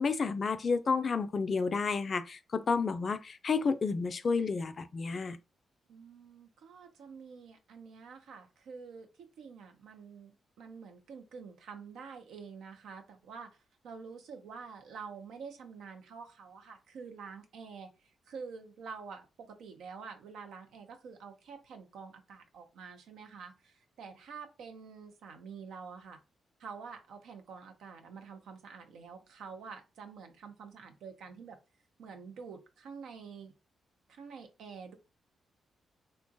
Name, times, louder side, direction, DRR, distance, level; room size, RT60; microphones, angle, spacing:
voice 1, 0.0-5.4, left 4 dB, 50° left, 0.3 m, -31 dB
voice 2, 5.9-26.2 26.6-31.6 32.0-33.5 34.1-34.9, right 5 dB, 75° right, 0.5 m, -48 dB
2.9 x 2.2 x 2.6 m
hypercardioid pair, 40°, 0 cm